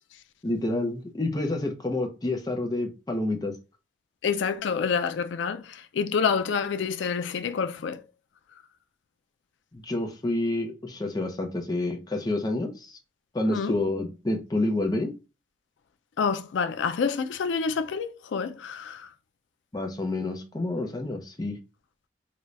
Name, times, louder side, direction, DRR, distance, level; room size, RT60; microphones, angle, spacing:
voice 1, 0.4-3.6 9.7-13.0 13.3-15.1 19.7-21.6, left 2 dB, 20° left, 0.6 m, -28 dB
voice 2, 4.2-8.0 13.5-13.8 16.2-19.1, left 6 dB, 90° left, 0.4 m, -28 dB
3.9 x 2.2 x 3.1 m
head